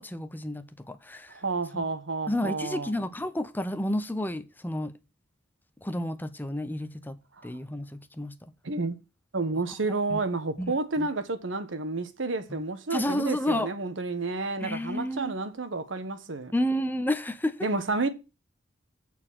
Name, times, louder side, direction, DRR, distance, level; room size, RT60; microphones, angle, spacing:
voice 1, 0.0-1.4 1.7-1.8 2.3-4.9 5.8-7.2 7.4-8.3 10.1-10.2 10.6-11.1 12.5-12.6 12.9-13.7 14.6-15.4 16.5-17.7, left 1 dB, 10° left, 0.7 m, -31 dB
voice 2, 1.3-2.9 8.6-9.0 9.3-16.5 17.6-18.1, right 3 dB, 75° right, 1.2 m, -30 dB
8.5 x 4.5 x 7.3 m
head